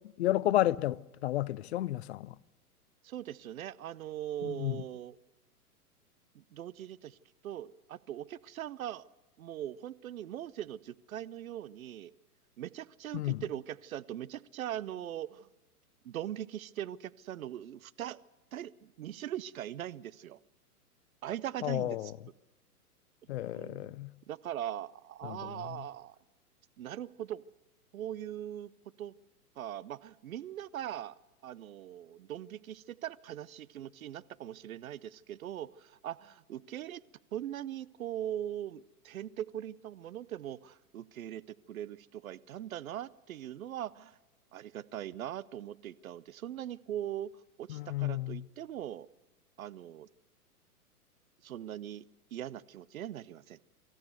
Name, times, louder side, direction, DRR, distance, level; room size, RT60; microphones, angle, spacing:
voice 1, 0.2-2.4 4.4-4.8 13.1-13.4 21.6-22.1 23.3-24.1 25.2-25.8 47.7-48.4, left 15 dB, 45° left, 0.6 m, -32 dB
voice 2, 3.0-5.2 6.3-7.2 7.4-9.0 9.4-12.1 12.6-15.5 16.0-18.2 18.5-20.4 21.2-22.1 23.4-23.9 24.3-26.2 26.8-27.4 27.9-28.7 29.0-29.1 29.6-31.2 31.4-37.0 37.3-41.4 41.7-44.2 44.5-47.3 47.6-49.1 49.6-50.1 51.4-52.1 52.3-53.6, right 11 dB, 65° right, 0.8 m, -41 dB
24.0 x 14.0 x 8.0 m
figure-of-eight pair, 115°, 46 cm